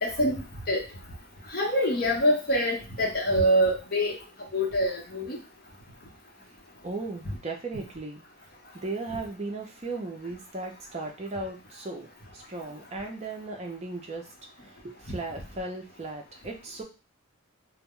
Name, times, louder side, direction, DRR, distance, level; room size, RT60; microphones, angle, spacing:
voice 1, 0.0-0.8 1.5-4.1 4.5-5.4, equal, 45° left, -1 dB, 0.8 m, -25 dB
voice 2, 6.8-8.2 8.7-14.3 14.6-16.8, right 2 dB, 30° right, 1 dB, 0.5 m, -36 dB
2.1 x 2.0 x 3.6 m, 0.30 s
head